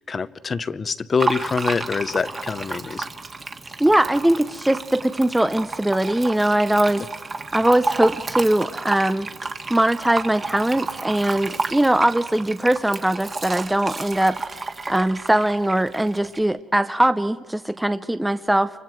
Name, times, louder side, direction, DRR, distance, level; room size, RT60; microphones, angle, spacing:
voice 1, 0.0-3.1, left 5 dB, 40° left, 15 dB, 0.8 m, -25 dB
Fill (with liquid), 1.2-16.4, right 3 dB, 35° right, 1.7 m, -31 dB
voice 2, 3.8-7.0 7.5-9.3 9.7-14.4 14.9-18.7, right 1 dB, 10° right, 11 dB, 0.6 m, -20 dB
29.5 x 25.0 x 4.6 m, 1.5 s
cardioid pair, 90°, 0 cm